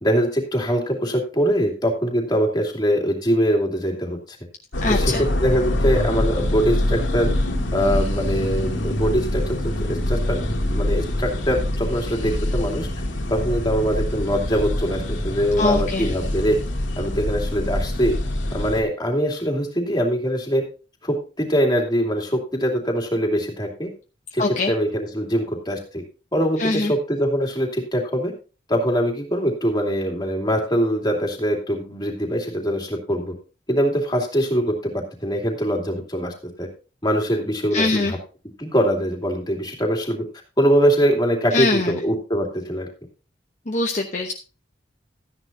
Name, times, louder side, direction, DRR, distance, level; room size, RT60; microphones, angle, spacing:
voice 1, 0.0-4.2 4.9-7.3 7.7-10.4 10.7-12.9 13.3-16.6 17.0-18.1 18.5-20.6 21.0-23.9 24.3-26.0 26.3-28.3 28.7-33.3 33.7-36.3 36.6-36.7 37.0-38.2 38.6-40.3 40.6-42.9, equal, 20° left, 1 dB, 2.7 m, -23 dB
sound 1, 4.7-18.8, left 1 dB, 90° left, 2.1 m, -25 dB
voice 2, 4.8-5.2 15.6-16.1 24.4-24.7 26.6-26.9 37.7-38.1 41.5-42.0 43.7-44.3, left 3 dB, 40° left, 3 dB, 0.9 m, -22 dB
13.5 x 10.0 x 2.7 m, 0.33 s
head